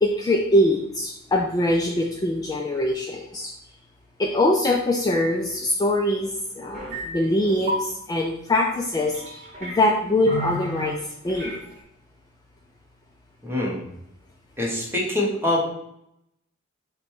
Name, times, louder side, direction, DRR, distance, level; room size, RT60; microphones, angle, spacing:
voice 1, 0.0-3.5 4.2-11.6, left 1 dB, 20° left, 0 dB, 0.3 m, -23 dB
sound 1, 6.7-7.1 7.4-7.8 8.8-9.8 10.3-10.9 11.3-11.6, right 1 dB, 35° right, 1.1 m, -32 dB
voice 2, 13.4-13.8 14.6-15.7, left 1 dB, 10° right, -3 dB, 1.0 m, -24 dB
5.1 x 2.2 x 4.5 m, 0.81 s
head